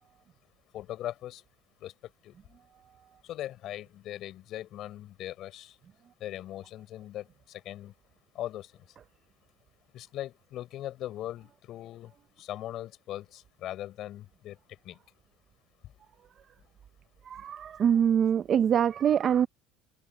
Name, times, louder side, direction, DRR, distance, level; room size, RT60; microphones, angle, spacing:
voice 1, 0.7-1.4 1.8-1.9 2.2-2.3 3.2-5.7 6.2-7.9 8.3-8.7 9.9-12.1 12.4-14.6 14.8-15.0, left 13 dB, 45° left, 5.2 m, -39 dB
voice 2, 17.3-19.5, right 8 dB, 35° right, 0.5 m, -24 dB
cardioid pair, 145°, 0 cm